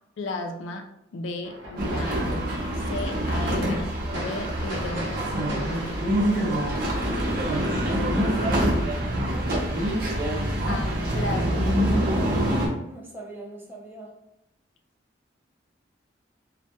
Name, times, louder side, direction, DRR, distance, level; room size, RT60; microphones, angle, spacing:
voice 1, 0.2-0.9 1.1-2.5 2.7-5.3 8.2-8.9 10.7-11.8, left 2 dB, 90° left, 4 dB, 0.3 m, -35 dB
sound 1, 1.4-7.9, equal, 85° right, 0.7 m, -39 dB
sound 2, 1.8-12.7, equal, 50° right, 0.6 m, -25 dB
voice 2, 6.1-7.1 9.2-9.5 12.1-12.4 12.8-14.2, right 1 dB, 10° right, -2 dB, 0.4 m, -42 dB
2.1 x 2.1 x 2.8 m, 0.85 s
head